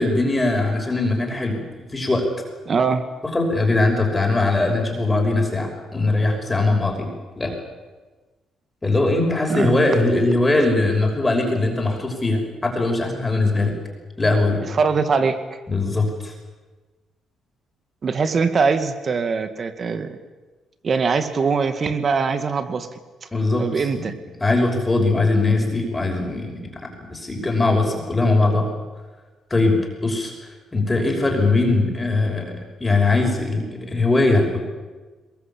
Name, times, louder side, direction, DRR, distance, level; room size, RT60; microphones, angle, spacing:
voice 1, 0.0-2.3 3.2-7.5 8.8-13.8 14.2-14.6 15.7-16.3 23.3-24.1 24.4-28.7 29.5-34.6, left 2 dB, 20° left, 1 dB, 5.8 m, -21 dB
voice 2, 2.7-3.0 9.5-9.8 14.7-15.4 18.0-20.2 20.8-22.9 23.6-24.1, right 5 dB, 45° right, 10 dB, 2.2 m, -22 dB
22.0 x 21.5 x 8.7 m, 1.3 s
cardioid pair, 90°, 0 cm